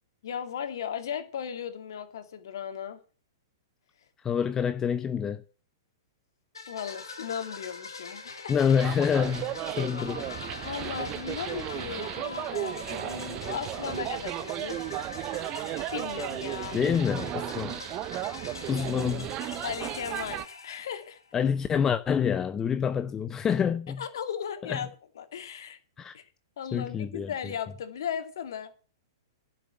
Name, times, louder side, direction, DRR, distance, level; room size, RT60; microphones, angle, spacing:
voice 1, 0.2-3.0 6.7-8.7 10.6-14.8 15.9-16.8 19.6-21.2 24.0-24.9 25.2-25.8 26.1-26.2 26.6-28.7, left 8 dB, 65° left, 2.3 m, -36 dB
voice 2, 4.2-5.4 8.5-10.3 16.7-17.8 18.7-19.3 21.3-24.0 24.6-24.8 26.0-26.1 26.7-27.3, left 7 dB, 20° left, 0.6 m, -27 dB
sound 1, 6.5-21.3, left 4 dB, 90° left, 2.8 m, -43 dB
sound 2, 8.8-20.4, right 15 dB, 35° right, 0.8 m, -35 dB
11.5 x 6.8 x 8.9 m
hypercardioid pair, 115°, 2 cm